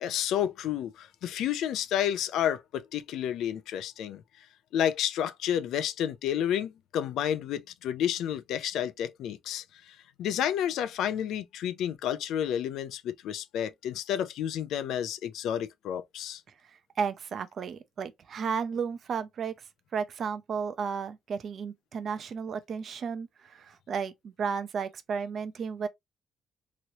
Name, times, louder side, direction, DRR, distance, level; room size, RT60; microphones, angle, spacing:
voice 1, 0.0-4.2 4.7-16.4, left 10 dB, 80° left, 0.4 m, -30 dB
voice 2, 17.0-19.5 19.9-25.9, right 6 dB, 45° right, 0.5 m, -33 dB
3.0 x 2.9 x 2.7 m
cardioid pair, 165°, 0 cm